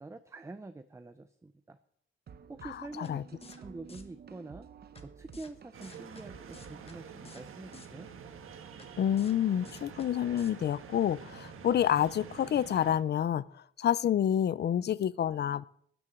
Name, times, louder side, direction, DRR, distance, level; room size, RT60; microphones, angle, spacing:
voice 1, 0.0-1.8 2.5-4.7 5.0-8.1, right 2 dB, 15° right, 10 dB, 0.6 m, -46 dB
sound 1, 2.3-7.6, right 7 dB, 50° right, 0.9 m, -53 dB
voice 2, 2.6-3.2 9.0-15.6, left 10 dB, 55° left, 19 dB, 0.5 m, -28 dB
sound 2, 3.0-3.1 3.4-3.6 3.9-4.0 5.0-5.1 5.3-5.5 5.8-6.2 6.5-7.0 7.2-7.4 7.7-7.9 8.8-8.9 9.2-9.4 9.6-10.1 10.4-10.5, left 4 dB, 30° left, 1.4 m, -52 dB
sound 3, 5.7-13.0, right 6 dB, 85° right, 1.6 m, -48 dB
13.5 x 6.9 x 9.8 m, 0.64 s
wide cardioid pair, 160°, 21 cm